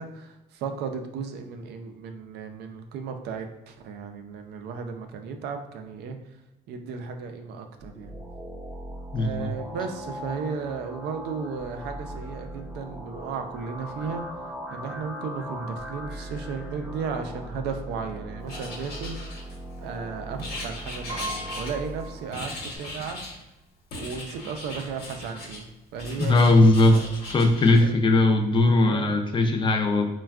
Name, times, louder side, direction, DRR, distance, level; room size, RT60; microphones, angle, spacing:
voice 1, 0.0-6.2 6.7-8.1 9.2-14.2 14.7-19.5 19.8-23.2 24.0-25.7 25.9-26.4 26.8-27.1 27.8-27.9 28.8-29.1, right 5 dB, 75° right, 6 dB, 0.4 m, -35 dB
sound 1, 7.8-22.8, equal, 10° right, 0.7 m, -39 dB
voice 2, 9.1-9.5 26.2-27.0 27.3-30.1, left 2 dB, 30° left, 4 dB, 0.4 m, -19 dB
Writing, 18.5-19.8 20.4-22.0 22.3-23.4 23.9-25.6 25.9-27.8, left 2 dB, 70° left, 1.0 m, -38 dB
Piano, 21.1-22.9 23.2-23.3 24.5-24.6 24.9-25.1, right 1 dB, 50° right, 0.8 m, -39 dB
3.3 x 2.2 x 2.3 m, 0.98 s
cardioid pair, 110°, 17 cm